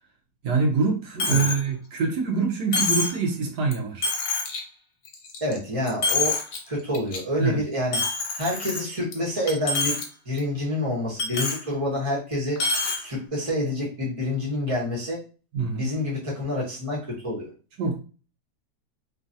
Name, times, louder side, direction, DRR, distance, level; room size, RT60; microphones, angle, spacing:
voice 1, 0.4-4.1 7.4-7.6 15.5-15.9 17.8-18.0, right 4 dB, 85° right, 1.3 m, -25 dB
Coin (dropping), 1.2-1.6 2.0-2.1 2.7-3.2 3.7-3.8 4.0-4.6 5.0-5.6 5.9-6.6 6.9-7.2 7.9-9.1 9.5-10.0 10.4-10.5 11.2-11.6 12.6-13.0, left 3 dB, 65° left, 1.1 m, -26 dB
voice 2, 5.4-6.4 6.7-8.0 8.4-10.0 10.2-12.6 13.0-15.2 15.7-17.5, left 1 dB, 25° right, 1.1 m, -27 dB
3.1 x 2.5 x 2.6 m
omnidirectional pair, 1.7 m